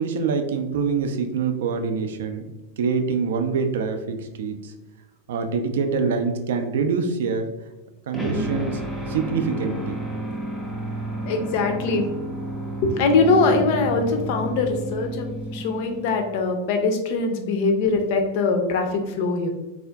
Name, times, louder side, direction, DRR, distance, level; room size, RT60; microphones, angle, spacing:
voice 1, 0.0-2.4 2.8-4.7 5.3-7.5 8.1-8.8 9.1-10.0, right 5 dB, 60° right, 6 dB, 0.3 m, -25 dB
sound 1, 8.1-16.4, right 1 dB, ahead, 0.7 m, -31 dB
voice 2, 11.2-12.1 12.8-19.5, left 3 dB, 50° left, 5 dB, 0.4 m, -22 dB
3.5 x 2.4 x 2.2 m, 1.1 s
figure-of-eight pair, 90°, 0 cm